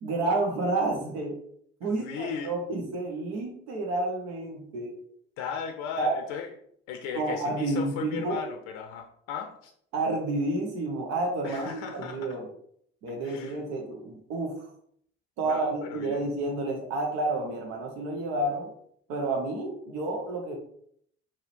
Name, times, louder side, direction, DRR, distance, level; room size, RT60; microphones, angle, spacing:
voice 1, 0.0-1.4 1.8-4.9 6.0-6.2 7.1-8.4 9.9-12.5 13.0-14.7 15.4-18.7 19.1-20.6, right 2 dB, 60° right, 1 dB, 0.9 m, -30 dB
voice 2, 1.8-2.6 5.4-6.5 6.9-9.7 11.4-12.4 13.2-13.6 15.4-16.2, left 7 dB, 55° left, 4 dB, 0.5 m, -37 dB
4.8 x 2.9 x 3.0 m, 0.66 s
figure-of-eight pair, 45°, 31 cm